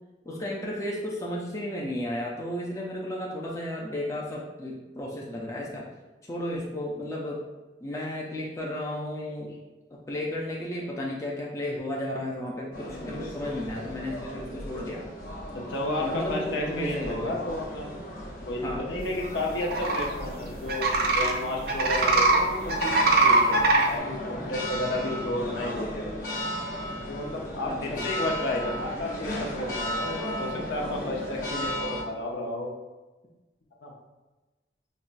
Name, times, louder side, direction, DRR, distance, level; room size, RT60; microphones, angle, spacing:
voice 1, 0.3-5.9 6.2-7.4 7.8-9.6 9.9-15.0 16.0-17.4 18.6-18.8 22.0-22.1 27.7-28.1, left 1 dB, 15° left, -3 dB, 0.4 m, -33 dB
sound 1, 12.7-32.0, equal, 45° left, 0.8 m, -35 dB
voice 2, 15.5-18.0 18.5-23.0 23.2-26.4 27.1-32.8 33.8-33.9, left 1 dB, 80° left, -1 dB, 0.7 m, -32 dB
sound 2, 19.6-20.1 20.7-21.3 21.7-22.4 22.7-23.9, right 3 dB, 55° right, 0.4 m, -21 dB
5.3 x 2.1 x 2.5 m, 1.1 s
head